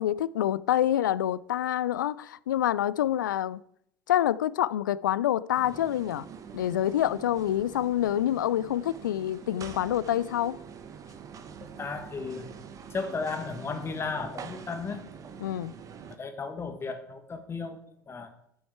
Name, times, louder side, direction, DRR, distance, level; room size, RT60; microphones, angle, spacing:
voice 1, 0.0-3.6 4.1-6.3 6.5-10.6 15.4-15.7, left 12 dB, 75° left, 0.4 m, -27 dB
sound 1, 5.5-16.2, right 7 dB, 30° right, 1.1 m, -45 dB
voice 2, 11.8-12.5 12.9-15.0 16.2-17.8 18.1-18.3, left 4 dB, 25° left, 1.5 m, -34 dB
10.0 x 7.0 x 4.6 m
figure-of-eight pair, 75°, 11 cm